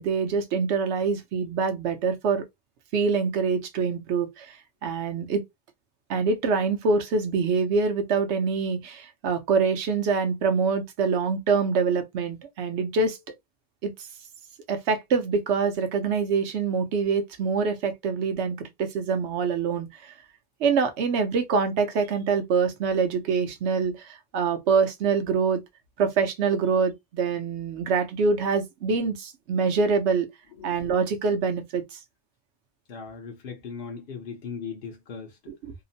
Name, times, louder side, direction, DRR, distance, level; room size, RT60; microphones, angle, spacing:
voice 1, 0.0-2.4 2.9-4.6 4.8-5.4 6.1-13.2 13.8-13.9 14.7-20.1 20.6-25.6 26.0-30.3 30.6-32.0 35.5-35.7, right 5 dB, 70° right, 0.9 m, -25 dB
voice 2, 32.9-35.4, left 6 dB, 55° left, 0.8 m, -38 dB
2.8 x 2.0 x 2.6 m
omnidirectional pair, 1.3 m